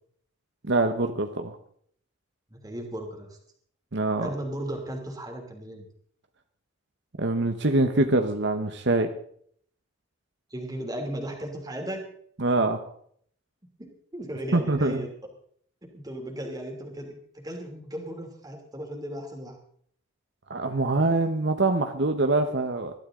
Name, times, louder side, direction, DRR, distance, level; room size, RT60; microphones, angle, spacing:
voice 1, 0.7-1.6 3.9-4.3 7.2-9.1 12.4-12.8 14.5-15.1 20.5-22.9, right 2 dB, 60° right, 6 dB, 1.1 m, -24 dB
voice 2, 2.5-3.4 4.2-5.9 10.5-12.1 13.8-15.1 15.9-17.2 17.4-19.6, right 1 dB, 20° right, 2 dB, 3.1 m, -36 dB
20.5 x 12.5 x 3.8 m, 0.62 s
head